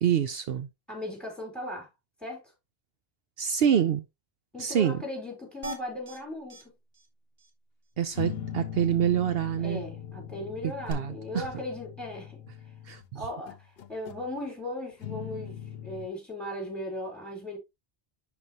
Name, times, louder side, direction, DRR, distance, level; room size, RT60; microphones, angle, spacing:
voice 1, 0.0-0.7 3.4-4.0 4.6-5.0 8.0-9.8 10.6-11.5 12.9-13.2, right 9 dB, 70° right, 0.8 m, -26 dB
voice 2, 0.9-1.9 2.2-2.4 4.5-6.6 9.2-12.4 13.1-17.6, left 1 dB, ahead, 3.6 m, -38 dB
sound 1, 5.6-6.2 6.5-6.6 6.9-7.1 7.4-7.5 10.9-11.0, right 1 dB, 40° right, 1.6 m, -38 dB
sound 2, 8.1-13.1 13.5-14.3 15.0-16.1, left 9 dB, 70° left, 0.9 m, -40 dB
11.0 x 4.1 x 2.8 m
omnidirectional pair, 1.1 m